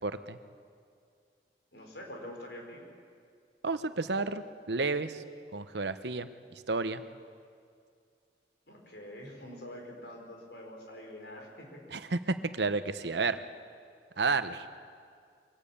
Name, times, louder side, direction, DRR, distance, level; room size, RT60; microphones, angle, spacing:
voice 1, 0.0-0.4 3.6-5.2 5.5-6.3 6.7-7.0 11.9-13.4 14.2-14.7, right 3 dB, 75° right, 11 dB, 0.9 m, -31 dB
voice 2, 1.7-2.8 8.7-11.8, left 1 dB, 75° left, 1 dB, 4.8 m, -45 dB
23.5 x 17.5 x 8.6 m, 2.2 s
head